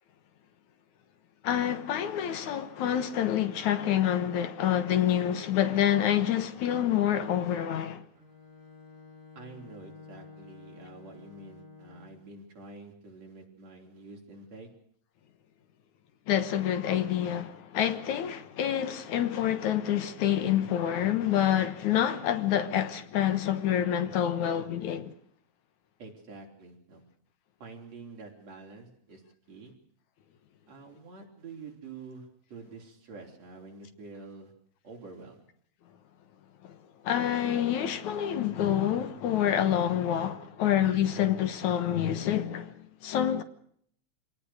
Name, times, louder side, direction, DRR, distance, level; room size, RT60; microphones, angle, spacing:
voice 1, 1.4-8.0 16.3-25.1 36.6-36.8 37.0-43.4, left 10 dB, 75° left, 2.7 m, -27 dB
Bowed string instrument, 8.1-12.3, left 4 dB, 15° right, 3.4 m, -51 dB
voice 2, 9.4-14.7 26.0-27.0 27.6-29.2 29.5-29.7 30.7-34.5 34.8-35.4, right 3 dB, 55° right, 5.4 m, -47 dB
26.0 x 18.0 x 6.5 m
omnidirectional pair, 3.5 m